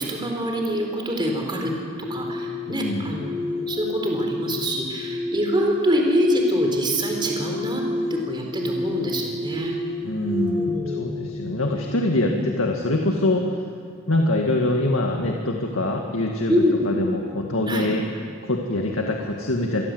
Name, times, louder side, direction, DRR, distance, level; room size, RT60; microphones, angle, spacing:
voice 1, 0.0-1.7 2.0-7.8 8.1-9.8 10.5-11.2 12.2-12.4 16.5-16.8 17.7-17.9, equal, 25° right, 1 dB, 4.1 m, -25 dB
sound 1, 1.7-12.7, left 1 dB, 80° right, 6.4 m, -31 dB
voice 2, 2.7-3.1 10.0-13.6 14.1-16.5 16.8-18.0 18.4-19.8, left 1 dB, 85° left, 1 dB, 2.0 m, -24 dB
27.0 x 21.5 x 8.0 m, 2.2 s
head